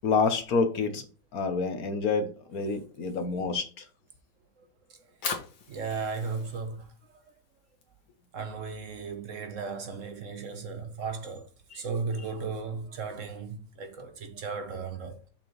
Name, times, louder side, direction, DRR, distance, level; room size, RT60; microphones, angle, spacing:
voice 1, 0.0-1.0 1.3-3.8, left 4 dB, 55° left, 1.2 m, -28 dB
voice 2, 4.6-5.1 5.7-7.3 8.3-15.2, right 4 dB, 55° right, 0.9 m, -36 dB
Fire, 4.9-11.1, left 6 dB, 80° left, 2.2 m, -42 dB
6.8 x 5.7 x 3.1 m
omnidirectional pair, 2.2 m